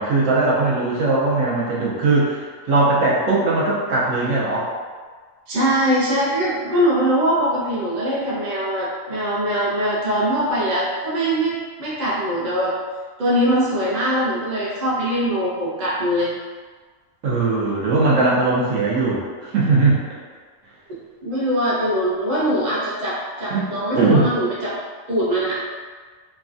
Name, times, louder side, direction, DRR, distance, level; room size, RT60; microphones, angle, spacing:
voice 1, 0.0-4.7 17.2-20.2 23.5-23.7 23.9-24.3, right 3 dB, 70° right, -6 dB, 1.0 m, -19 dB
voice 2, 5.5-12.7 13.2-16.3 21.2-24.8 25.1-25.6, equal, 40° right, -8 dB, 0.7 m, -22 dB
3.2 x 2.3 x 2.5 m, 1.5 s
omnidirectional pair, 1.4 m